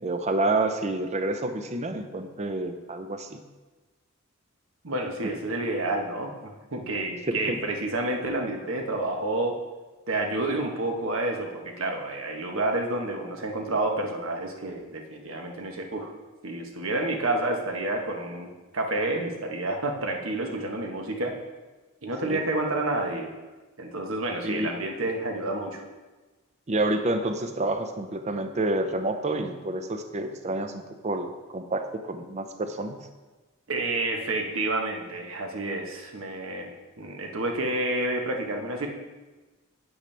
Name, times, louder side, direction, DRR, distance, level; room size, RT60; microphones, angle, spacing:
voice 1, 0.0-3.4 7.3-7.6 22.2-22.4 24.4-24.7 26.7-33.0, right 2 dB, 35° right, 7 dB, 0.6 m, -29 dB
voice 2, 4.8-9.6 10.1-16.1 16.4-21.3 22.0-23.3 23.8-25.8 33.7-38.9, right 2 dB, 70° right, 2 dB, 1.2 m, -29 dB
8.8 x 7.9 x 3.3 m, 1.2 s
head